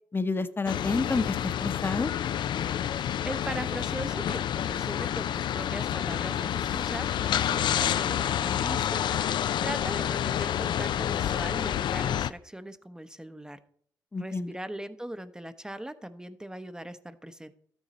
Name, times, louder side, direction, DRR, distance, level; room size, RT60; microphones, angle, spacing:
voice 1, 0.1-2.1 14.1-14.5, left 3 dB, 30° left, 11 dB, 0.9 m, -29 dB
sound 1, 0.7-12.3, left 10 dB, 75° left, 0.4 m, -29 dB
voice 2, 3.2-9.0 9.6-13.6 14.2-17.5, right 1 dB, 10° right, 11 dB, 0.8 m, -39 dB
13.0 x 9.0 x 4.2 m, 0.63 s
cardioid pair, 80°, 8 cm